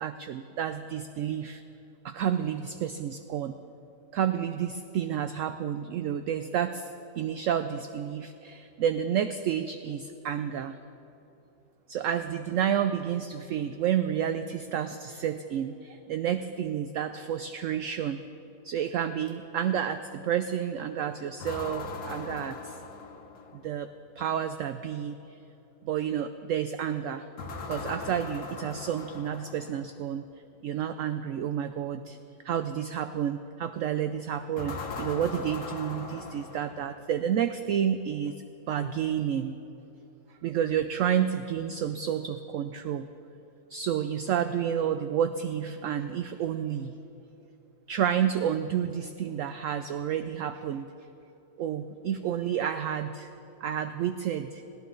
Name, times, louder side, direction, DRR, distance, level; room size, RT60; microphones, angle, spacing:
voice 1, 0.0-1.6 2.0-3.6 4.1-6.9 7.2-10.8 11.9-18.2 18.6-22.7 23.6-23.9 24.2-25.1 25.8-27.2 27.7-30.2 30.6-32.2 32.4-38.3 38.7-39.6 40.4-43.1 43.7-46.9 47.9-50.9 51.6-53.3 53.6-54.6, right 9 dB, 70° right, 10 dB, 0.8 m, -30 dB
sound 1, 21.4-23.7 27.4-29.9 34.6-37.2, left 4 dB, 60° left, 1.6 m, -39 dB
21.5 x 16.0 x 3.8 m, 3.0 s
omnidirectional pair, 1.8 m